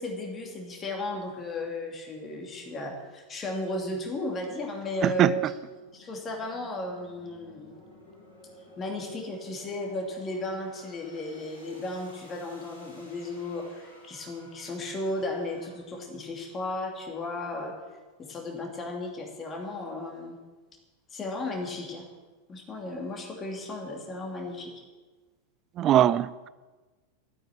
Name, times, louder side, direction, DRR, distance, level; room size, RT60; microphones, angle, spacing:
voice 1, 0.0-5.5 5.9-7.7 8.8-17.7 18.2-20.4 21.1-22.1 22.5-24.7, left 1 dB, 20° left, 2.7 m, -35 dB
sound 1, 5.2-15.7, left 1 dB, 75° left, 6.5 m, -53 dB
voice 2, 25.8-26.5, right 12 dB, 30° right, 0.5 m, -21 dB
13.5 x 9.2 x 8.9 m
figure-of-eight pair, 90°, 0 cm